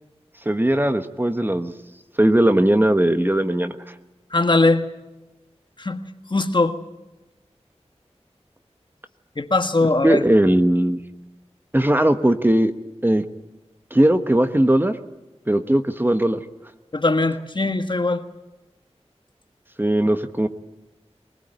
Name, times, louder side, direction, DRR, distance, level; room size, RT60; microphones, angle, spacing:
voice 1, 0.4-1.7 2.2-3.9 10.0-11.0 11.7-12.7 13.0-13.2 13.9-15.0 15.5-16.4 19.8-20.5, right 1 dB, 20° right, 9 dB, 1.2 m, -18 dB
voice 2, 4.3-4.9 5.8-6.0 6.3-6.8 9.4-10.2 16.9-18.2, left 2 dB, 45° left, 8 dB, 1.5 m, -20 dB
22.0 x 20.5 x 9.0 m, 1.1 s
wide cardioid pair, 75°, 11 cm